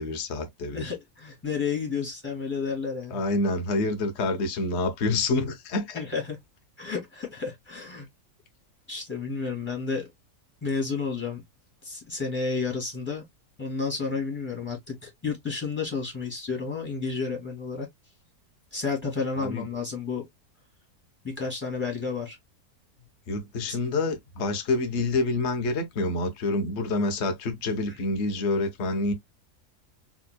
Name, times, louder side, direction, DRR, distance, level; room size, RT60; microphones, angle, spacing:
voice 1, 0.0-0.9 3.1-6.0 19.4-19.7 23.3-29.1, left 2 dB, 50° left, 1.2 m, -27 dB
voice 2, 0.7-3.2 5.9-6.4 6.8-8.1 8.9-10.1 10.6-11.4 11.8-13.2 13.6-17.9 18.7-20.3 21.2-22.4 27.9-28.0, left 5 dB, 5° left, 2.5 m, -31 dB
4.3 x 3.7 x 2.2 m
omnidirectional pair, 1.6 m